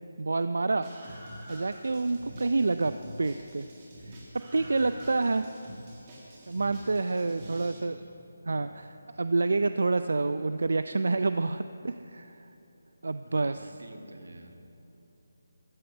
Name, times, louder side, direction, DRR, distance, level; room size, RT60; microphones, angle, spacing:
voice 1, 0.2-0.9 1.5-2.9 3.2-3.7 4.0-5.4 6.5-7.9 8.4-8.7 9.2-12.5 13.0-13.7, right 3 dB, 65° right, 11 dB, 0.4 m, -28 dB
Screaming, 0.8-7.8, equal, 15° right, 1.7 m, -47 dB
voice 2, 2.1-2.6 5.0-5.4 7.2-8.0 8.5-8.7 11.8-12.0 13.2-14.7, right 2 dB, 90° right, 4 dB, 1.6 m, -50 dB
13.5 x 7.9 x 8.8 m, 2.9 s
hypercardioid pair, 180°, 0 cm